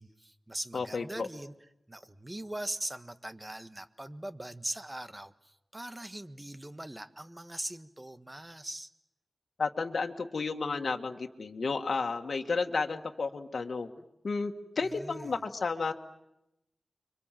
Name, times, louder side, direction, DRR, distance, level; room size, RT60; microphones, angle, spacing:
voice 1, 0.0-1.5 1.9-8.9 14.8-15.4, right 1 dB, 20° right, 11 dB, 1.4 m, -41 dB
voice 2, 0.7-1.3 9.6-13.9 14.2-15.9, left 4 dB, 70° left, 4 dB, 1.8 m, -32 dB
30.0 x 24.5 x 7.6 m, 0.86 s
wide cardioid pair, 80°, 0 cm